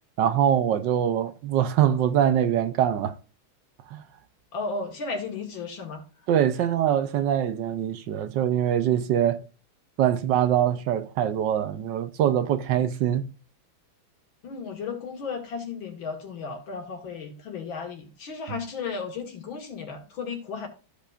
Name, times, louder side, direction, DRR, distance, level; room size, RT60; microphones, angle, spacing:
voice 1, 0.2-3.1 3.9-4.0 6.3-9.4 10.0-13.2, right 10 dB, 70° right, 1.3 m, -23 dB
voice 2, 4.5-6.0 14.4-20.7, left 4 dB, 75° left, 2.8 m, -34 dB
14.5 x 5.3 x 2.5 m
omnidirectional pair, 2.1 m